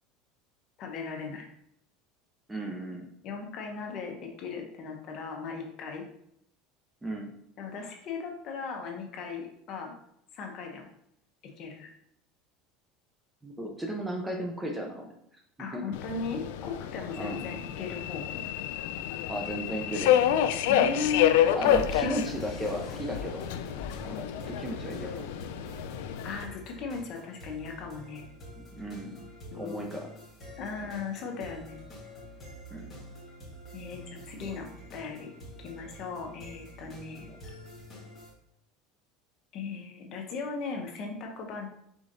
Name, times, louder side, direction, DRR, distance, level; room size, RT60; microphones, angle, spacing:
voice 1, 0.8-1.5 3.2-6.1 7.6-10.0 10.3-10.9 11.4-11.9 15.6-18.4 20.7-21.4 24.1-24.3 26.2-28.2 29.5-29.9 30.6-31.8 33.7-35.3 35.6-37.3 39.5-41.7, left 5 dB, 45° left, 2 dB, 0.9 m, -37 dB
voice 2, 2.5-3.1 7.0-7.3 13.4-15.1 15.7-16.0 17.2-17.4 19.3-20.2 21.5-23.4 24.0-24.1 24.6-25.1 28.6-29.1 29.5-30.1 32.7-32.9, equal, 10° right, 1 dB, 0.6 m, -35 dB
Subway metro underground, 15.9-26.4, left 10 dB, 85° left, 0.3 m, -28 dB
sound 1, 21.6-38.3, equal, 20° left, 1.5 m, -47 dB
5.0 x 3.7 x 2.6 m, 0.73 s
cardioid pair, 150°, 0 cm